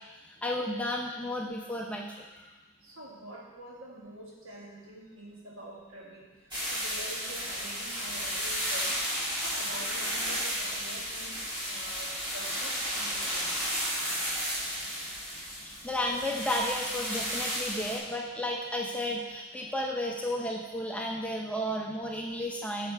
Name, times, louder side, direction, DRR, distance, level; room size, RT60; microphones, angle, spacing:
voice 1, 0.2-2.5 15.6-22.9, left 1 dB, 5° left, -1 dB, 0.5 m, -33 dB
voice 2, 2.8-6.3 6.7-9.0 9.3-13.6 19.6-19.7, right 1 dB, 70° right, -4 dB, 1.8 m, -46 dB
sound 1, 6.5-18.0, equal, 20° right, 1.9 m, -33 dB
9.3 x 6.5 x 3.4 m, 1.2 s
head